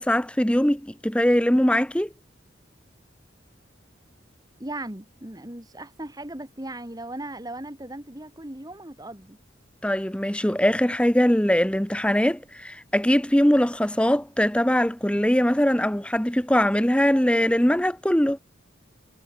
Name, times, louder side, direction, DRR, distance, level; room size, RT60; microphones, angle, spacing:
voice 1, 0.0-2.1 9.8-18.4, equal, 5° left, 0.8 m, -21 dB
voice 2, 4.6-9.4, right 1 dB, 20° right, 1.7 m, -37 dB
head